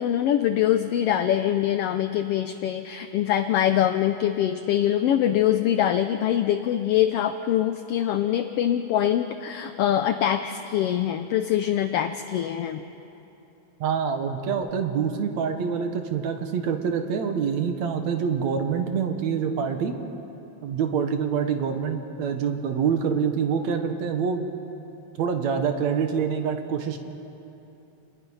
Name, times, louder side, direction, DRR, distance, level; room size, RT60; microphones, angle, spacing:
voice 1, 0.0-12.8, left 11 dB, 75° left, 8 dB, 1.4 m, -24 dB
voice 2, 13.8-19.9 20.6-24.4 25.2-27.0, right 6 dB, 70° right, 6 dB, 2.5 m, -26 dB
28.0 x 20.0 x 5.6 m, 2.9 s
omnidirectional pair, 3.4 m